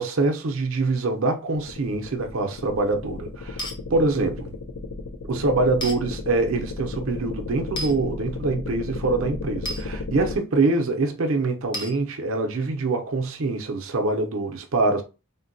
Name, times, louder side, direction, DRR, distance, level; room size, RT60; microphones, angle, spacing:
voice 1, 0.0-4.5 5.3-15.0, right 3 dB, 70° right, 0.6 m, -24 dB
sound 1, 1.5-10.4, left 3 dB, 85° left, 0.5 m, -34 dB
sound 2, 3.6-3.8 5.8-6.0 7.8-7.9 9.7-9.8 11.7-12.0, equal, 20° left, 0.5 m, -31 dB
3.7 x 2.1 x 2.5 m
head